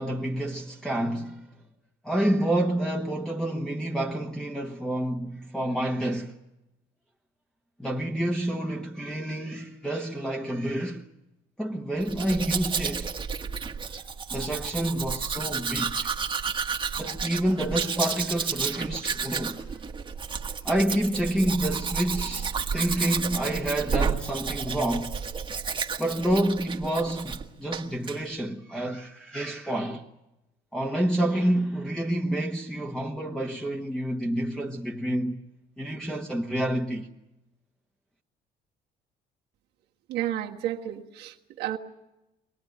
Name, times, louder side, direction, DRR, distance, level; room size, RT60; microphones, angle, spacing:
voice 1, 0.0-1.5 2.0-6.4 7.8-11.0 11.6-13.1 14.3-16.1 17.0-19.6 20.6-25.2 26.0-30.0 30.7-35.4 35.8-37.1, right 1 dB, 5° left, 1.3 m, -28 dB
Domestic sounds home sounds, 12.0-27.4 27.7-28.2, right 6 dB, 30° right, 1.5 m, -31 dB
voice 2, 40.1-41.8, right 12 dB, 80° right, 1.5 m, -31 dB
24.0 x 18.0 x 9.4 m
cardioid pair, 110°, 17 cm